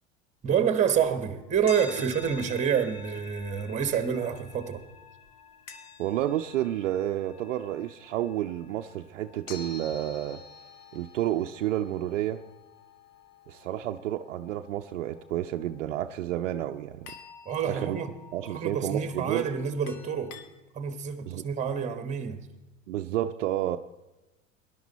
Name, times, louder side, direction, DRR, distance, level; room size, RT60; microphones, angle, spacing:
voice 1, 0.4-4.8 17.4-18.1 18.4-20.4 20.7-22.5, right 7 dB, 20° right, 1.4 m, -28 dB
sound 1, 0.9-20.4, left 5 dB, 50° left, 1.6 m, -49 dB
voice 2, 6.0-10.4 10.9-12.4 13.5-17.1 17.6-18.0 18.3-19.5 21.3-21.4 22.9-23.8, right 12 dB, 75° right, 0.6 m, -30 dB
19.0 x 11.5 x 4.1 m
hypercardioid pair, 85°, 38 cm